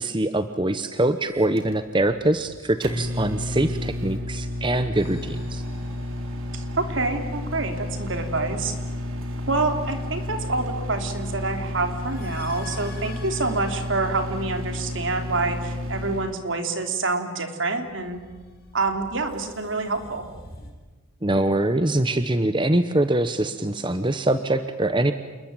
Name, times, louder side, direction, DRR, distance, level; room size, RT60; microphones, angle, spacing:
voice 1, 0.0-5.6 21.2-25.1, right 1 dB, 25° right, 10 dB, 0.9 m, -23 dB
Microwave oven, 1.3-16.3, left 1 dB, 85° right, 4.0 m, -31 dB
sound 1, 5.0-6.9 10.8-15.3 17.8-20.7, left 2 dB, 45° left, 6.3 m, -47 dB
voice 2, 6.5-8.7 9.5-18.2 18.7-20.2, right 3 dB, 70° right, 6 dB, 3.2 m, -27 dB
28.5 x 21.5 x 9.0 m, 1.3 s
head